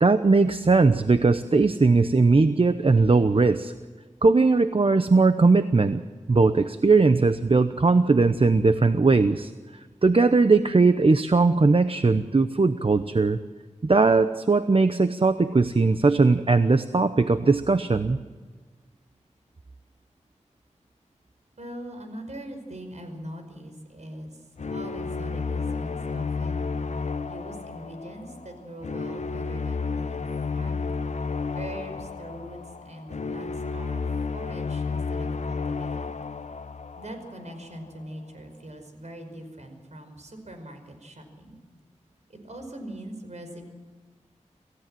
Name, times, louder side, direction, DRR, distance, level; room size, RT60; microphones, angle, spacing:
voice 1, 0.0-3.7 4.2-6.0 6.3-9.5 10.0-13.4 13.8-18.2, right 3 dB, 45° right, 10 dB, 0.9 m, -19 dB
voice 2, 21.6-26.7 27.3-30.2 30.5-30.9 31.6-32.6 32.8-36.1 37.0-41.6 42.3-43.7, right 1 dB, 65° right, 5 dB, 5.3 m, -41 dB
sound 1, 24.6-37.7, left 4 dB, 65° left, 0.9 m, -31 dB
27.5 x 16.5 x 7.7 m, 1.4 s
wide cardioid pair, 65°, 13 cm